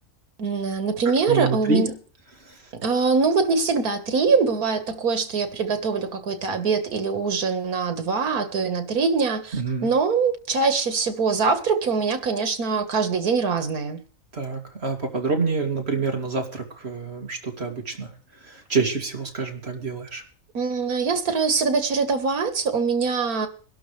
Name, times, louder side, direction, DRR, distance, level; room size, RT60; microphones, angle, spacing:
voice 1, 0.4-1.9 2.7-14.0 20.5-23.5, right 4 dB, 90° right, 2.0 m, -23 dB
voice 2, 1.3-1.8 2.5-2.6 9.5-9.9 14.3-18.1 18.4-20.2, right 4 dB, 45° right, 2.8 m, -27 dB
22.0 x 12.0 x 3.3 m
omnidirectional pair, 1.5 m